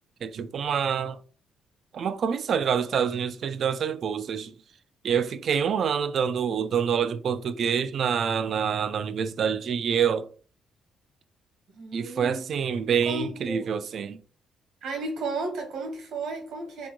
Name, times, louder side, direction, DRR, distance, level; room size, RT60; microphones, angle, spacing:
voice 1, 0.2-1.2 1.9-4.5 5.0-10.3 11.9-14.2, right 7 dB, 60° right, 0.3 m, -26 dB
voice 2, 11.7-12.5 12.9-13.8 14.8-16.9, right 3 dB, 80° right, 1.1 m, -34 dB
2.9 x 2.2 x 3.7 m
cardioid pair, 90°, 0 cm